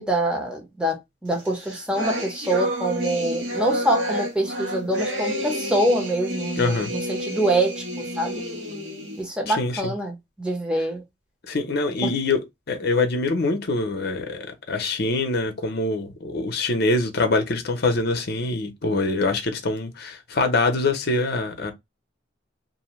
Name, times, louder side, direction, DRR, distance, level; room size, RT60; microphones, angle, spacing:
voice 1, 0.0-7.8 8.2-8.4 9.2-11.0 12.0-12.1, right 1 dB, 5° right, 0.7 m, -25 dB
sound 1, 1.4-9.2, equal, 80° right, 1.1 m, -30 dB
voice 2, 6.6-6.9 9.5-9.9 11.5-12.4 12.7-21.7, left 3 dB, 55° left, 0.7 m, -24 dB
2.6 x 2.2 x 3.0 m
head